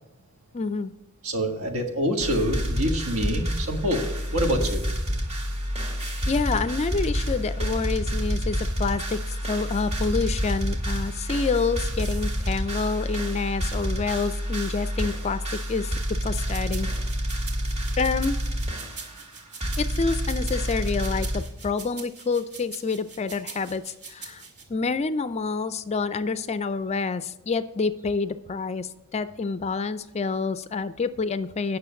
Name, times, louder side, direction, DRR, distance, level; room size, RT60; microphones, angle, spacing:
voice 1, 0.5-0.9 6.3-16.9 18.0-18.4 19.8-24.4 24.7-31.8, left 4 dB, 30° left, 13 dB, 0.4 m, -28 dB
voice 2, 1.2-4.8, equal, 70° right, 3 dB, 1.7 m, -26 dB
sound 1, 2.2-21.4, equal, 30° right, 2.1 m, -28 dB
sound 2, 16.3-24.6, right 5 dB, 50° right, 2.1 m, -43 dB
9.3 x 6.5 x 6.9 m, 0.89 s
head